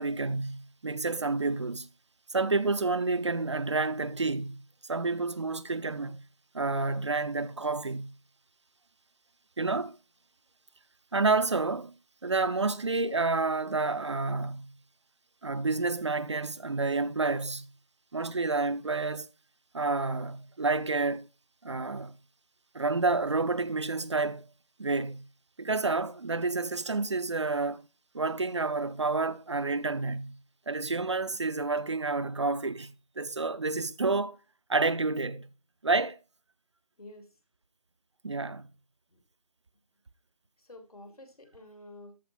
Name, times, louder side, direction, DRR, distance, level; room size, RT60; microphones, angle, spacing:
voice 1, 0.0-1.9 2.3-6.2 6.5-8.1 9.6-10.0 11.1-11.9 12.2-14.7 15.4-17.7 18.1-19.3 19.7-21.3 21.6-22.1 22.7-24.5 24.8-25.3 25.6-27.9 28.1-30.4 30.7-34.4 34.7-35.5 35.8-36.2 38.2-38.7, right 3 dB, 50° right, 0.5 m, -29 dB
voice 2, 37.0-37.4 39.1-39.2 40.6-42.2, left 1 dB, 80° left, 2.9 m, -49 dB
13.5 x 4.5 x 4.2 m
figure-of-eight pair, 160°, 19 cm